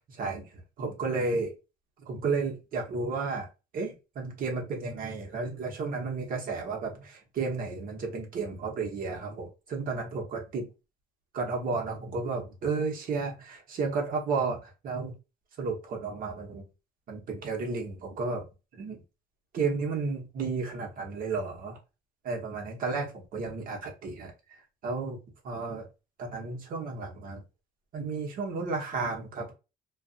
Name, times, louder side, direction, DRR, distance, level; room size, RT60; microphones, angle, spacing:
voice 1, 0.1-0.5 0.8-1.5 2.1-3.5 3.7-10.7 11.3-15.1 15.6-16.6 17.1-18.4 18.8-19.0 19.5-21.8 22.2-24.3 24.8-25.2 25.4-25.9 26.2-27.4 27.9-29.5, right 4 dB, 55° right, 1.1 m, -32 dB
2.5 x 2.5 x 2.4 m
cardioid pair, 110°, 17 cm